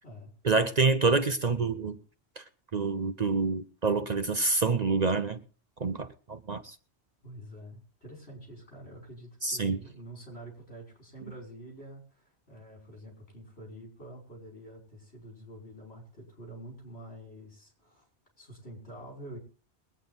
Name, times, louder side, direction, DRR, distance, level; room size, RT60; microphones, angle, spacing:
voice 1, 0.4-2.0 2.7-5.4 5.8-6.7 9.4-9.8, right 4 dB, 40° right, 0.8 m, -27 dB
voice 2, 7.2-18.1 18.4-19.4, right 1 dB, 70° left, 5.7 m, -47 dB
22.5 x 9.0 x 3.9 m
omnidirectional pair, 1.1 m